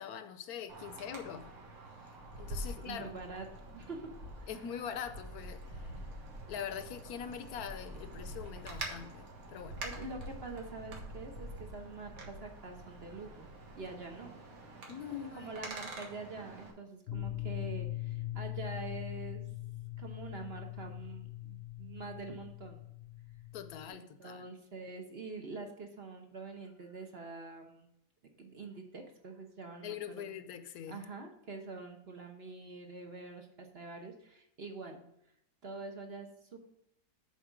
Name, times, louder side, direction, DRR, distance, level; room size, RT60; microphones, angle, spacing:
voice 1, 0.0-1.5 2.4-3.1 4.5-5.9 6.5-9.8 14.9-15.5 23.5-24.5 29.8-31.0, left 8 dB, 75° left, 1.1 m, -43 dB
Wind, 0.7-16.7, right 1 dB, 65° right, 1.8 m, -46 dB
voice 2, 2.6-3.5 3.7-4.1 4.4-4.5 9.8-13.5 13.8-14.3 14.8-19.5 20.0-22.8 23.9-27.9 28.4-30.0 30.9-35.0 35.6-36.6, right 3 dB, 45° right, 1.1 m, -45 dB
sound 1, 17.1-23.9, left 15 dB, 60° left, 0.7 m, -41 dB
7.3 x 4.2 x 6.0 m
omnidirectional pair, 1.6 m